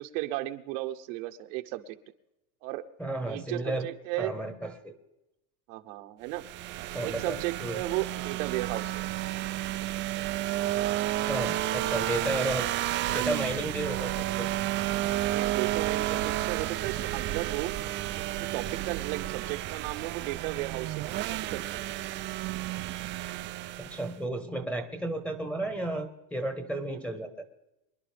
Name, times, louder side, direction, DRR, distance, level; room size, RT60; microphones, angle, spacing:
voice 1, 0.0-2.0 2.6-2.8 3.3-4.3 5.7-6.4 6.8-9.1 15.2-17.7 18.2-21.9, right 16 dB, 65° right, 6 dB, 1.1 m, -35 dB
voice 2, 3.0-3.9 4.2-4.9 6.9-7.8 11.3-12.7 13.1-14.5 23.8-27.4, right 1 dB, 5° left, 6 dB, 1.2 m, -33 dB
sound 1, 6.3-24.2, right 15 dB, 30° right, 0.4 m, -31 dB
25.0 x 11.0 x 3.4 m, 0.91 s
supercardioid pair, 150°, 43 cm